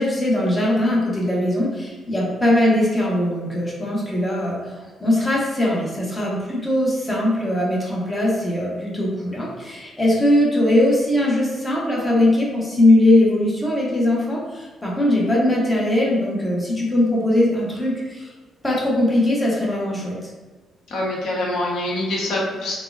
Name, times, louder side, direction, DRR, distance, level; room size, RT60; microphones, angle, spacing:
voice 1, 0.0-4.7 5.0-18.3 18.6-20.2, left 1 dB, 20° left, -4 dB, 0.9 m, -20 dB
voice 2, 20.9-22.7, left 1 dB, 70° left, -4 dB, 0.9 m, -25 dB
3.5 x 2.1 x 2.4 m, 1.3 s
cardioid pair, 90°, 0 cm